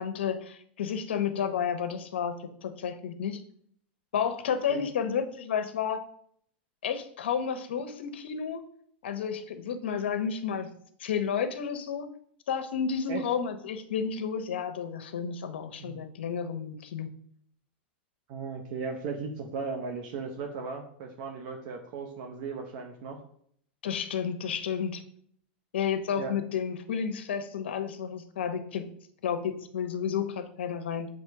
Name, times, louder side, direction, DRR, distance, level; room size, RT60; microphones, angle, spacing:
voice 1, 0.0-3.4 4.1-6.0 6.8-8.6 9.0-10.7 11.0-12.1 12.5-17.1 23.8-25.0 25.7-28.9 29.2-31.1, left 7 dB, 90° left, 8 dB, 0.9 m, -31 dB
voice 2, 18.3-23.2 26.2-26.3, right 5 dB, 55° right, 3 dB, 0.9 m, -36 dB
7.3 x 3.2 x 4.6 m, 0.64 s
supercardioid pair, 135°, 6 cm